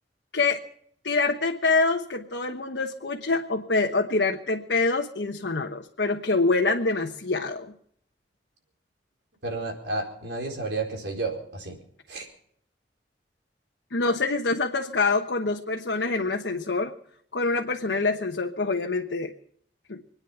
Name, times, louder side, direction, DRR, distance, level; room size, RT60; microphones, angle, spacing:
voice 1, 1.0-7.7 13.9-16.9 17.3-19.3 19.9-20.0, left 3 dB, 75° left, 2 dB, 1.2 m, -25 dB
voice 2, 9.4-11.8 12.1-12.3, right 3 dB, 85° right, 1 dB, 4.6 m, -31 dB
26.0 x 9.7 x 5.7 m, 0.65 s
head